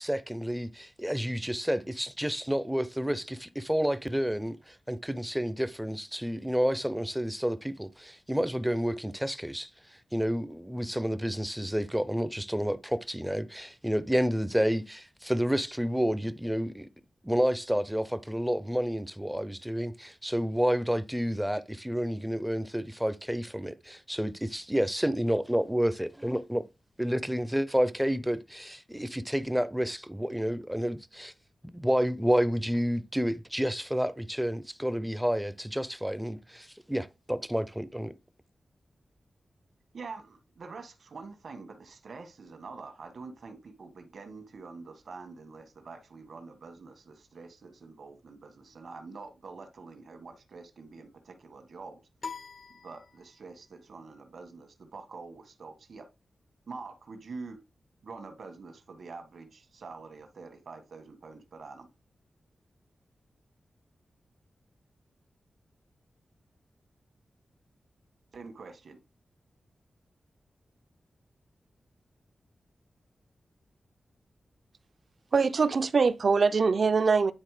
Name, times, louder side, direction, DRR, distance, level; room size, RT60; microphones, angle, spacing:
voice 1, 0.0-9.7 10.1-16.9 17.2-26.6 27.0-31.3 31.7-38.1, equal, 5° right, 0.5 m, -30 dB
voice 2, 39.9-52.0 52.8-56.1 56.7-57.6 58.0-61.9 68.3-69.0, right 4 dB, 65° right, 1.4 m, -46 dB
sound 1, 52.2-53.7, left 5 dB, 55° left, 0.6 m, -43 dB
voice 3, 75.3-77.3, right 4 dB, 50° right, 0.5 m, -23 dB
9.7 x 4.0 x 4.9 m
wide cardioid pair, 145°, 0 cm